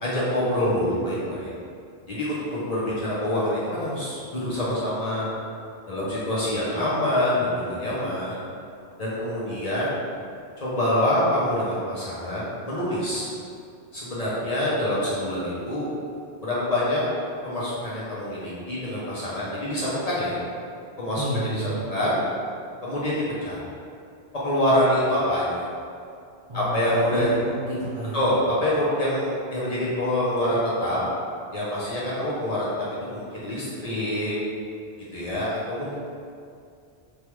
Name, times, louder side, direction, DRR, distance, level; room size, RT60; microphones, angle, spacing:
voice 1, 0.0-1.5 2.1-5.3 5.9-8.4 9.0-9.9 10.6-13.3 13.9-15.9 16.4-17.0 17.4-20.4 21.0-21.6 21.9-22.2 22.8-23.6 24.3-25.6 26.5-27.3 28.1-31.0 31.5-34.3 35.1-35.9, left 1 dB, 45° left, -8 dB, 0.6 m, -26 dB
voice 2, 21.2-21.8 26.5-28.2, right 1 dB, 45° right, -10 dB, 0.3 m, -30 dB
3.1 x 2.2 x 3.0 m, 2.4 s
omnidirectional pair, 1.1 m